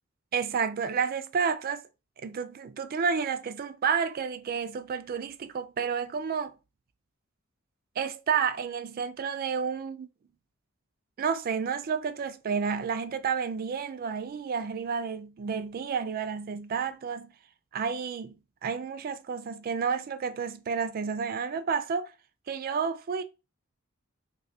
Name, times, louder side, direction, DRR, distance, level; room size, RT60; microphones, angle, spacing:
voice 1, 0.3-1.8 2.2-6.5 8.0-10.1 11.2-17.3 17.7-18.3 18.6-22.1 22.5-23.2, right 6 dB, 45° right, 0.3 m, -30 dB
3.4 x 2.7 x 2.7 m
head